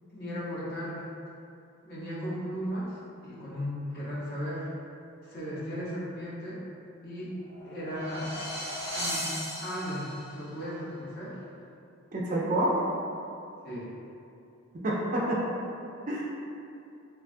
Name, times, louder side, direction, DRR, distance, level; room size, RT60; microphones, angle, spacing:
voice 1, 0.1-1.1 1.8-3.0 3.2-4.7 5.2-6.6 7.0-7.4 7.6-8.3 9.0-9.3 9.6-11.4 13.6-13.9, equal, 45° left, -8 dB, 0.7 m, -36 dB
sound 1, 7.4-10.4, equal, 15° left, 0.9 m, -36 dB
voice 2, 12.1-12.7 14.7-15.4 16.1-16.2, right 1 dB, 35° right, -4 dB, 0.3 m, -28 dB
3.3 x 2.2 x 2.5 m, 2.6 s
head